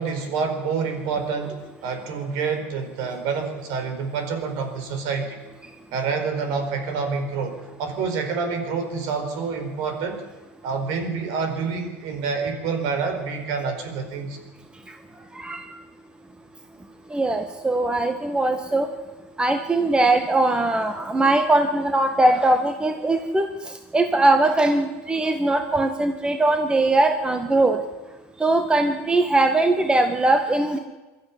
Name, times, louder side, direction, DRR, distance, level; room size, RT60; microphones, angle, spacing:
voice 1, 0.0-5.4 5.9-10.2 10.6-14.4, right 5 dB, 65° right, 6 dB, 4.6 m, -27 dB
voice 2, 15.3-15.7 17.1-18.9 19.4-27.8 28.4-30.8, right 2 dB, 15° right, 6 dB, 1.7 m, -21 dB
22.0 x 13.0 x 9.8 m, 1.2 s
supercardioid pair, 95°, 7 cm